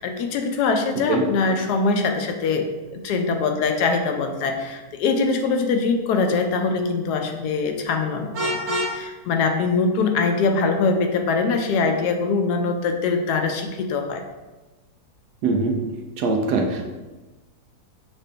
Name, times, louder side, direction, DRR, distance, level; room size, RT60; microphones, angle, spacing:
voice 1, 0.0-14.2, left 4 dB, 80° left, 5 dB, 1.1 m, -23 dB
Vehicle horn car horn honking, 8.3-9.0, equal, 55° right, 1.4 m, -25 dB
voice 2, 15.4-15.7 16.2-16.8, right 3 dB, 85° right, 2 dB, 1.2 m, -22 dB
5.7 x 2.5 x 3.3 m, 1.2 s
omnidirectional pair, 1.7 m